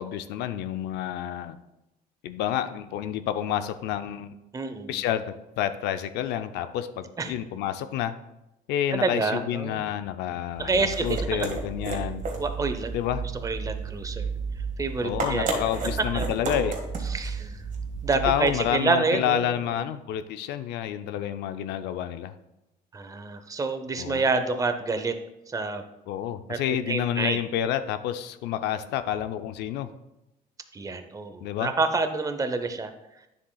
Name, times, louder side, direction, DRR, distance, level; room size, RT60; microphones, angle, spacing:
voice 1, 0.0-1.6 2.2-4.3 4.9-8.1 8.7-12.2 12.9-13.2 15.0-16.8 18.2-22.3 24.0-24.2 26.1-29.9 31.4-31.7, left 10 dB, 85° left, 10 dB, 0.5 m, -29 dB
voice 2, 4.5-5.0 7.2-7.3 8.9-9.8 10.6-11.5 12.4-12.9 13.4-14.3 14.8-15.5 16.1-16.3 17.1-17.6 18.0-19.7 22.9-25.1 25.5-25.8 26.5-26.6 26.9-27.4 30.7-32.9, right 3 dB, 20° right, 8 dB, 0.7 m, -28 dB
sound 1, 10.5-18.8, right 4 dB, 50° right, 1.7 m, -32 dB
9.6 x 7.2 x 2.3 m, 0.91 s
cardioid pair, 110°, 17 cm